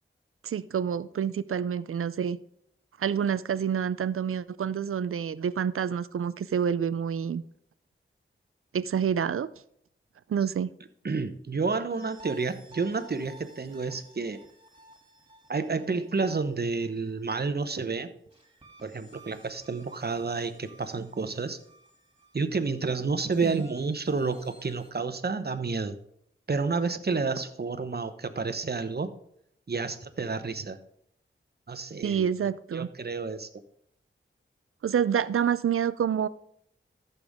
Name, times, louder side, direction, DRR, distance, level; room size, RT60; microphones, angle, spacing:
voice 1, 0.4-2.4 3.0-7.4 8.7-9.5 10.3-10.7 23.4-23.6 32.0-32.9 34.8-36.3, right 8 dB, 85° right, 17 dB, 0.4 m, -28 dB
voice 2, 11.0-14.4 15.5-18.1 18.8-21.6 22.3-26.0 26.5-29.1 29.7-30.8 31.7-32.3 32.7-33.5, right 4 dB, 50° right, 10 dB, 0.9 m, -30 dB
sound 1, 11.9-17.5 18.3-24.9, right 1 dB, 25° right, 2.7 m, -54 dB
14.0 x 6.9 x 3.6 m, 0.71 s
wide cardioid pair, 50°, 21 cm